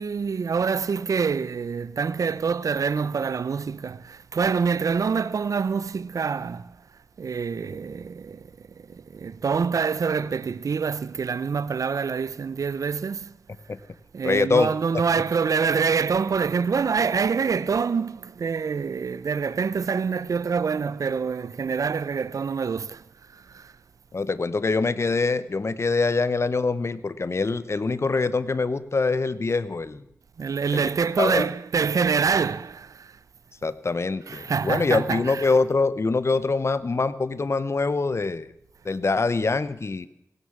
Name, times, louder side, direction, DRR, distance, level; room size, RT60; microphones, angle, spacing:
voice 1, 0.0-6.7 7.2-8.5 8.8-13.3 14.1-23.0 23.3-23.7 30.4-33.1 34.3-35.5, right 5 dB, 70° right, 0.6 m, -26 dB
voice 2, 14.2-14.7 24.1-30.0 30.7-30.8 31.2-31.5 33.6-38.5 38.8-40.1, left 3 dB, 50° left, 0.9 m, -24 dB
16.5 x 9.6 x 7.3 m
cardioid pair, 45°, 6 cm